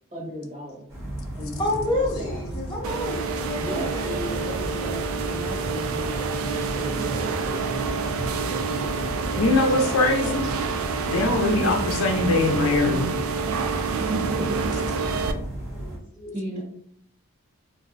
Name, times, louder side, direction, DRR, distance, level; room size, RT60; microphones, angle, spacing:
voice 1, 0.1-0.9 1.3-2.5 3.3-10.4 11.4-11.6 14.3-14.7 16.3-16.6, equal, 35° right, -4 dB, 1.2 m, -35 dB
sound 1, 0.9-16.0, right 1 dB, 10° right, 0.9 m, -34 dB
voice 2, 1.6-4.3 15.2-15.4 15.7-16.3, left 1 dB, 20° left, -3 dB, 0.5 m, -30 dB
sound 2, 2.8-15.3, right 5 dB, 70° right, 0.3 m, -28 dB
voice 3, 9.4-10.5 11.1-13.1, left 2 dB, 70° left, 4 dB, 0.5 m, -22 dB
2.5 x 2.1 x 3.8 m, 0.65 s
head